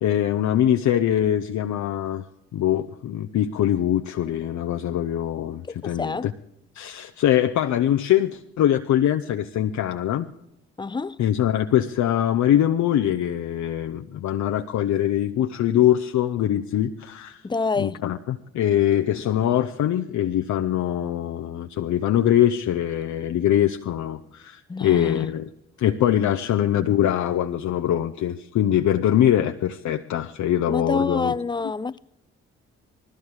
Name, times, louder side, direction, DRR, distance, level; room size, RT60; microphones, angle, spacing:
voice 1, 0.0-2.2 2.5-6.3 6.7-10.3 11.2-17.4 17.8-25.5 25.8-31.3, left 11 dB, 65° left, 0.8 m, -23 dB
voice 2, 5.7-6.3 10.8-11.2 17.4-18.0 24.7-25.3 30.7-32.0, left 4 dB, 15° left, 0.5 m, -27 dB
19.0 x 14.5 x 4.8 m
hypercardioid pair, 50°, 32 cm